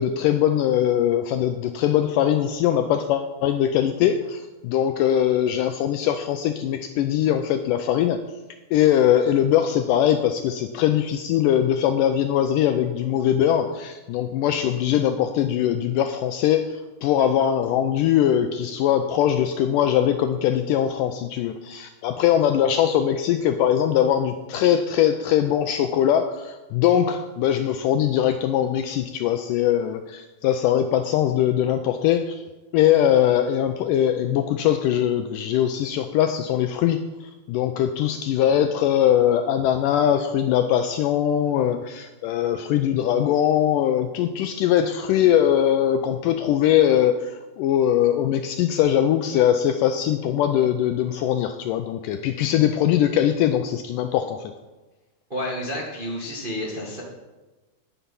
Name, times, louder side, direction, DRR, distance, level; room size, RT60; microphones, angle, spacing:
voice 1, 0.0-8.2 8.7-32.4 32.7-37.0 37.5-54.5, left 10 dB, 85° left, 8 dB, 1.8 m, -21 dB
voice 2, 55.3-57.0, left 1 dB, 85° right, -3 dB, 0.4 m, -30 dB
10.0 x 10.0 x 5.5 m, 1.2 s
omnidirectional pair, 4.4 m